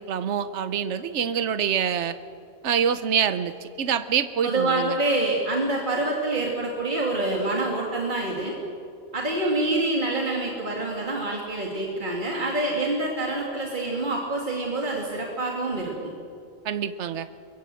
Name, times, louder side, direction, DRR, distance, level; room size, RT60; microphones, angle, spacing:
voice 1, 0.0-2.1 2.6-5.0 16.6-17.3, right 8 dB, 80° right, 12 dB, 1.1 m, -26 dB
voice 2, 4.4-8.6 9.1-16.1, right 2 dB, 45° right, -1 dB, 2.8 m, -26 dB
24.0 x 22.0 x 7.7 m, 2.4 s
omnidirectional pair, 1.2 m